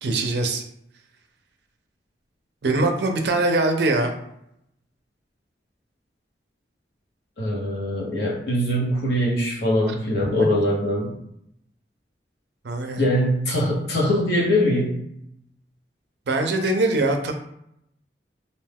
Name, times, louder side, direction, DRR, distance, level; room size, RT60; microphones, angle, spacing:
voice 1, 0.0-0.6 2.6-4.1 10.4-10.5 12.6-13.0 16.3-17.3, right 2 dB, 70° right, 5 dB, 0.5 m, -22 dB
voice 2, 7.4-11.1 13.0-15.0, equal, 65° left, -4 dB, 1.0 m, -22 dB
2.6 x 2.2 x 3.3 m, 0.75 s
head